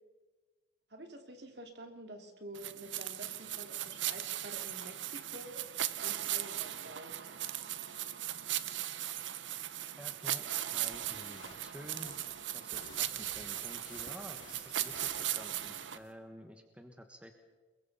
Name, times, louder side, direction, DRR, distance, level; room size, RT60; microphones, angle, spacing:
voice 1, 0.9-5.6 6.0-7.2, right 1 dB, 60° right, 4 dB, 2.8 m, -49 dB
sound 1, 2.6-16.0, right 12 dB, 85° right, 0.9 m, -38 dB
voice 2, 10.0-12.2 12.5-17.3, equal, 5° right, 5 dB, 1.4 m, -50 dB
sound 2, 10.7-16.1, left 4 dB, 85° left, 2.8 m, -55 dB
29.5 x 22.0 x 4.2 m, 1.3 s
head